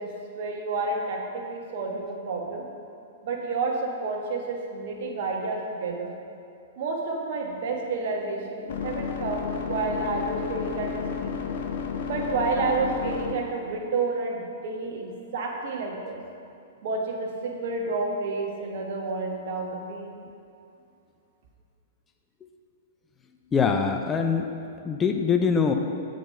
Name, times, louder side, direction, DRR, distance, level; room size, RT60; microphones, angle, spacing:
voice 1, 0.0-2.6 3.2-6.1 6.8-11.4 12.0-16.2 16.8-20.1, right 3 dB, 55° right, 0 dB, 1.3 m, -30 dB
sound 1, 7.6-13.6, left 6 dB, 60° left, 0.8 m, -32 dB
voice 2, 23.5-24.5 24.8-25.7, left 6 dB, 20° left, 4 dB, 0.5 m, -23 dB
7.4 x 5.2 x 5.6 m, 2.5 s
figure-of-eight pair, 105°, 0 cm